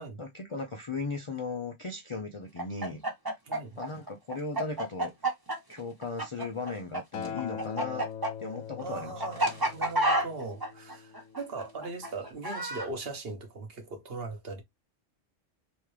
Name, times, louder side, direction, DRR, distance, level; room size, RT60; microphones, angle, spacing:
voice 1, 0.2-3.0 3.8-5.3 5.7-8.1 8.4-9.4, left 4 dB, 45° left, 0.4 m, -37 dB
Chicken rooster, 2.6-7.0 7.2-12.9, right 1 dB, 20° right, 0.9 m, -29 dB
voice 2, 3.5-3.8 8.8-14.6, right 3 dB, 55° right, 1.2 m, -39 dB
Acoustic guitar, 7.1-11.4 12.3-12.4, left 8 dB, 75° left, 1.0 m, -42 dB
3.5 x 3.1 x 3.2 m
omnidirectional pair, 1.3 m